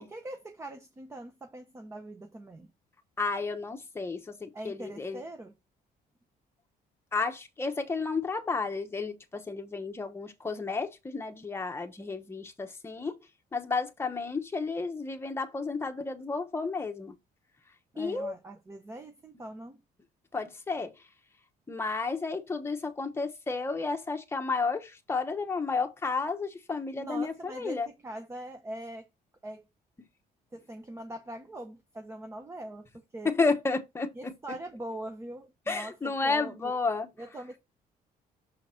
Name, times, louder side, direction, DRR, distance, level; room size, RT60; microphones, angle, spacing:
voice 1, 0.0-2.7 4.5-5.5 17.9-19.8 27.0-29.1 29.4-29.7 30.5-33.3 34.1-36.7 37.2-37.6, right 1 dB, 15° right, 0.7 m, -42 dB
voice 2, 3.2-5.2 7.1-13.1 13.5-17.1 18.0-18.3 20.3-20.9 21.7-27.9 33.2-34.3 35.7-37.1, left 4 dB, 15° left, 0.9 m, -32 dB
6.4 x 3.8 x 4.3 m
cardioid pair, 155°, 16 cm